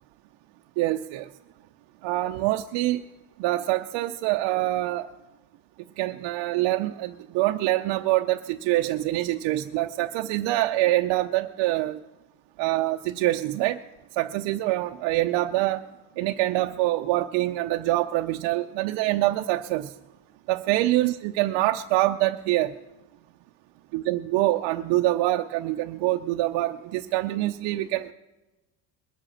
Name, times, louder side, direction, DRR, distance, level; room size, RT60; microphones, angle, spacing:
voice 1, 0.8-1.3 2.0-3.0 3.4-5.1 6.0-12.0 12.6-13.8 14.1-15.9 16.2-19.9 20.5-22.7 23.9-28.1, right 16 dB, 80° right, 5 dB, 0.7 m, -25 dB
21.5 x 7.6 x 6.4 m, 1.1 s
cardioid pair, 150°, 44 cm